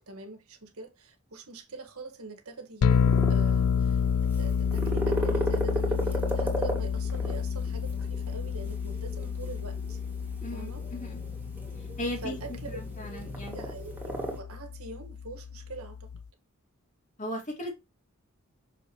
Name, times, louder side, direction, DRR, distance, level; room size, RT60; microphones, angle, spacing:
voice 1, 0.1-4.0 4.3-10.0 10.5-10.9 12.2-12.8 13.5-16.1, right 3 dB, 80° right, 1.7 m, -43 dB
sound 1, 2.8-16.2, left 6 dB, 70° left, 0.3 m, -30 dB
sound 2, 2.9-14.4, right 1 dB, 10° right, 2.2 m, -36 dB
voice 2, 12.0-12.4 12.7-13.7 17.2-17.7, equal, 35° left, 2.3 m, -36 dB
6.5 x 6.1 x 3.0 m
head